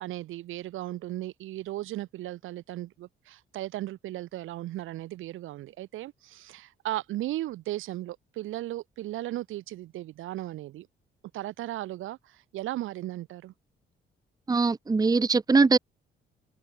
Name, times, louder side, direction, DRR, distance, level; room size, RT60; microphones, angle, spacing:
voice 1, 0.0-10.9 11.3-13.5, right 15 dB, 85° right, 3.6 m, -36 dB
voice 2, 14.5-15.8, right 4 dB, 20° right, 0.8 m, -21 dB
open air
cardioid pair, 90°, 20 cm